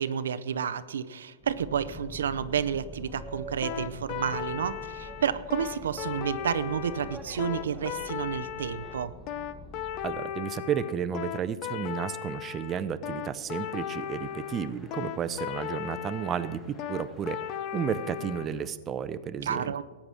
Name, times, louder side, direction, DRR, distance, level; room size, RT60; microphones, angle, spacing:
voice 1, 0.0-9.1 19.5-19.8, right 8 dB, 85° right, 13 dB, 0.6 m, -30 dB
Boat Water vehicle, 1.4-10.2, right 1 dB, ahead, 1.2 m, -45 dB
sound 1, 3.6-18.5, left 11 dB, 40° left, 0.7 m, -36 dB
voice 2, 10.0-17.4 17.7-19.8, right 8 dB, 25° right, 11 dB, 0.6 m, -32 dB
sound 2, 13.5-18.7, left 2 dB, 15° left, 1.8 m, -55 dB
13.5 x 8.5 x 6.2 m, 1.4 s
hypercardioid pair, 135°, 0 cm